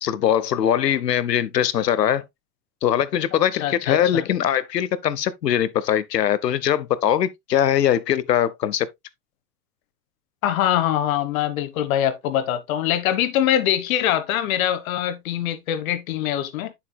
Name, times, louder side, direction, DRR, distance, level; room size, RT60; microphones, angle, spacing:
voice 1, 0.0-2.2 2.8-8.9, left 10 dB, 80° left, 0.8 m, -21 dB
voice 2, 3.6-4.2 10.4-16.7, left 11 dB, 55° left, 1.2 m, -23 dB
8.5 x 7.1 x 2.2 m
figure-of-eight pair, 90°, 49 cm